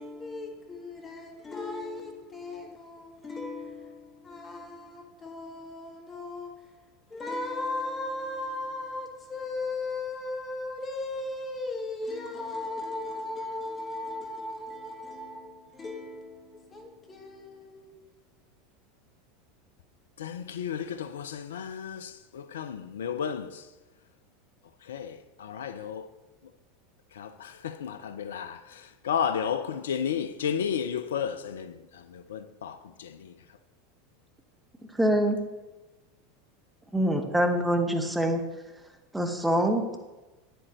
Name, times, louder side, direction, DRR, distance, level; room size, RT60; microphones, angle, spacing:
voice 1, 0.0-18.0, left 2 dB, 25° left, 1.8 m, -37 dB
voice 2, 20.2-23.6 24.9-26.1 27.2-31.8 32.1-33.3, left 7 dB, 70° left, 0.4 m, -33 dB
voice 3, 35.0-35.4 36.9-38.4 39.1-40.0, right 1 dB, 5° right, 1.1 m, -25 dB
8.9 x 7.8 x 3.1 m
figure-of-eight pair, 80°, 0 cm